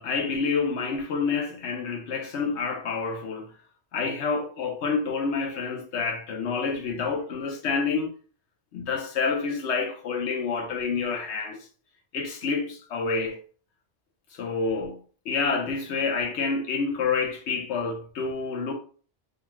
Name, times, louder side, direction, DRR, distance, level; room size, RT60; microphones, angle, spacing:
voice 1, 0.0-3.5 3.9-8.1 8.7-11.7 12.1-13.4 14.3-18.7, left 4 dB, 70° left, 0.9 m, -28 dB
2.7 x 2.3 x 3.0 m
omnidirectional pair, 1.2 m